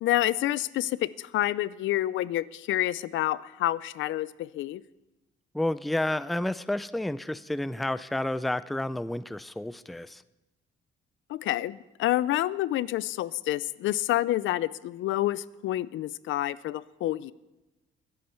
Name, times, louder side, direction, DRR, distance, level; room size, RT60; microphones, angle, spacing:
voice 1, 0.0-4.8 11.3-17.3, left 14 dB, 75° left, 18 dB, 0.5 m, -28 dB
voice 2, 5.5-10.2, left 1 dB, ahead, 15 dB, 0.4 m, -30 dB
21.5 x 8.7 x 4.4 m, 1.0 s
cardioid pair, 90°, 20 cm